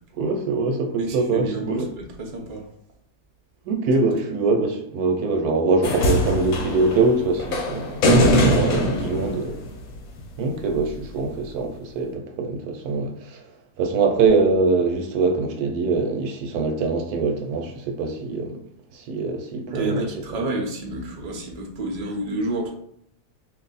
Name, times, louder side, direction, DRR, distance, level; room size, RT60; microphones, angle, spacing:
voice 1, 0.1-1.9 3.6-9.6 10.4-13.5 13.8-18.6 18.9-20.0 20.3-20.5, right 3 dB, 70° right, 4 dB, 1.0 m, -23 dB
voice 2, 1.0-2.7 8.7-9.2 19.7-22.7, right 1 dB, 55° right, 0 dB, 0.4 m, -29 dB
sound 1, 5.8-10.2 11.3-11.4, equal, 65° left, 1.0 m, -21 dB
2.9 x 2.6 x 4.0 m, 0.67 s
omnidirectional pair, 1.8 m